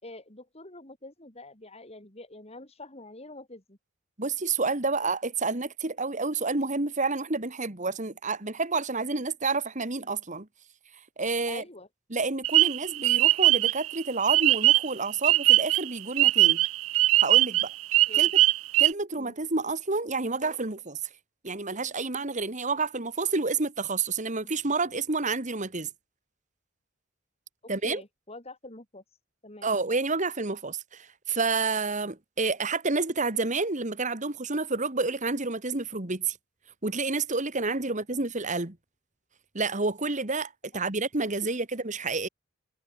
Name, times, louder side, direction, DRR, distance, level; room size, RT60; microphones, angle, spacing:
voice 1, 0.0-3.8 11.5-11.9 18.1-18.3 19.2-19.3 27.6-29.0 29.4-29.7 38.1-38.2, left 2 dB, 30° left, 4.4 m, -46 dB
voice 2, 4.2-10.5 11.2-11.6 12.1-16.6 17.2-17.7 18.1-18.4 18.8-21.0 21.4-25.9 27.7-28.0 29.6-36.4 36.8-38.8 39.5-42.3, right 3 dB, 35° right, 2.0 m, -29 dB
sound 1, 12.4-14.9 15.2-18.9, right 17 dB, 80° right, 0.4 m, -21 dB
head